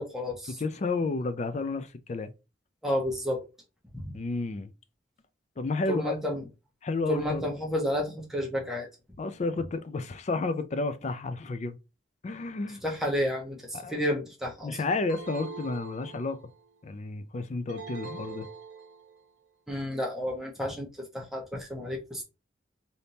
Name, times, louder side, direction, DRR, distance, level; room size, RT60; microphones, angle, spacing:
voice 1, 0.0-0.6 2.8-3.4 3.9-4.1 5.9-6.4 7.1-8.9 12.8-14.7 19.7-20.9 21.1-22.2, left 1 dB, ahead, 0.9 m, -31 dB
voice 2, 0.6-2.3 4.1-4.7 5.6-6.2 6.8-7.5 9.2-11.8 12.2-12.8 13.7-14.0 14.6-16.4 16.8-18.5, left 3 dB, 40° left, 0.4 m, -31 dB
sound 1, 15.1-16.7 17.7-19.3, right 4 dB, 65° right, 0.8 m, -43 dB
3.4 x 2.7 x 2.7 m
head